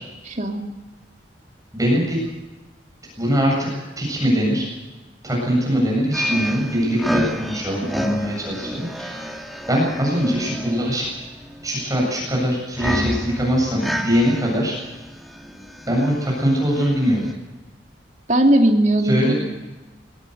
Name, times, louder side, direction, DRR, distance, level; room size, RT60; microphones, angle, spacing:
voice 1, 0.2-0.6 18.3-19.3, right 1 dB, 40° right, 3 dB, 2.9 m, -18 dB
voice 2, 1.7-2.2 3.2-3.7 4.0-4.7 5.2-9.4 9.7-11.1 11.6-14.8 15.9-17.2 19.0-19.3, equal, 20° right, -2 dB, 7.8 m, -22 dB
sound 1, 6.1-17.3, equal, ahead, 2.2 m, -30 dB
22.0 x 18.0 x 8.1 m, 1.1 s
head